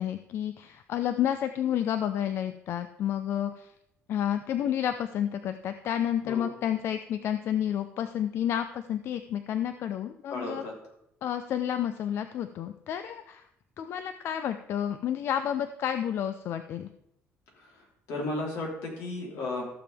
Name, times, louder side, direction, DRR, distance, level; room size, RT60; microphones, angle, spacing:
voice 1, 0.0-3.7 4.1-10.6 11.2-13.4 13.8-16.9, left 10 dB, 55° left, 10 dB, 0.5 m, -30 dB
voice 2, 10.3-10.7 17.6-19.7, left 2 dB, 80° left, -2 dB, 3.6 m, -34 dB
14.5 x 7.0 x 3.5 m, 0.76 s
cardioid pair, 135°, 5 cm